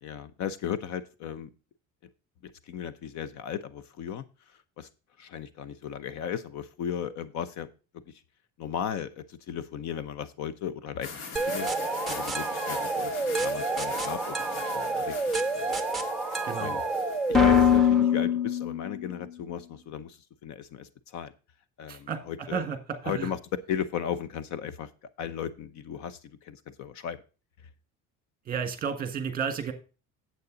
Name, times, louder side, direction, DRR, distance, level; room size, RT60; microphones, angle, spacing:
voice 1, 0.0-1.5 2.7-4.2 4.8-4.9 5.2-7.7 8.6-11.1 11.5-11.7 12.1-15.7 16.6-16.8 17.3-20.2 20.4-21.3 21.8-22.6 23.0-23.4 23.7-24.9 25.2-26.2 26.4-27.2, left 8 dB, 55° left, 15 dB, 0.8 m, -35 dB
sound 1, 11.0-17.8, left 5 dB, 70° left, 2.0 m, -42 dB
sound 2, 11.4-19.1, left 3 dB, ahead, 1.1 m, -26 dB
voice 2, 16.4-16.8 21.9-23.3 28.4-29.7, right 6 dB, 25° right, 8 dB, 1.8 m, -32 dB
9.7 x 8.0 x 3.9 m, 0.33 s
cardioid pair, 160°, 33 cm